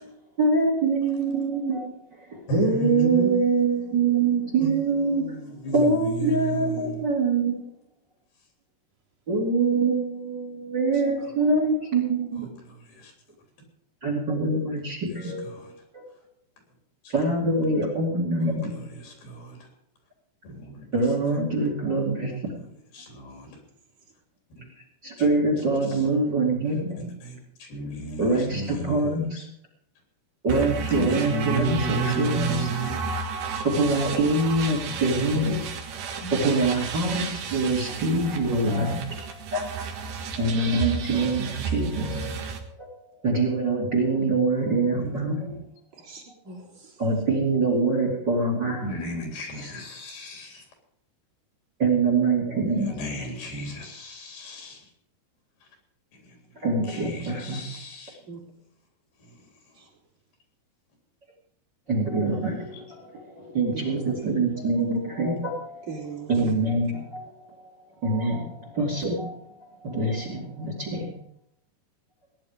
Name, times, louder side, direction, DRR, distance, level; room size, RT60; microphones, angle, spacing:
voice 1, 0.4-1.9 2.3-5.2 5.7-7.5 9.3-12.5 14.0-15.7 15.9-16.0 17.1-18.7 20.9-22.6 25.0-27.1 28.2-29.4 30.4-32.7 33.6-35.7 36.0-39.2 39.5-40.1 40.4-42.9 43.2-45.5 47.0-48.8 51.8-53.0 56.6-57.6 61.9-65.9 66.3-67.3 68.0-69.4 69.8-71.1, right 3 dB, 30° right, 0 dB, 3.3 m, -24 dB
voice 2, 2.5-7.1 12.4-13.1 15.2-15.7 17.0-17.1 18.4-19.7 20.4-20.9 22.9-23.6 25.2-25.3 25.9-26.0 27.0-29.5 30.5-33.0 34.8-35.0 36.2-36.4 37.9-38.0 41.9-42.4 45.0-45.6 48.8-50.7 52.7-54.9 56.2-58.2 59.2-59.5 62.7-62.8, right 2 dB, 65° left, 2 dB, 5.4 m, -34 dB
sound 1, 30.5-42.6, right 6 dB, 65° right, 3.1 m, -33 dB
voice 3, 45.9-47.0 58.3-58.4 59.8-59.9 63.9-64.3 65.9-66.5, right 4 dB, 50° right, -4 dB, 4.8 m, -40 dB
18.5 x 10.5 x 5.3 m, 0.69 s
omnidirectional pair, 4.7 m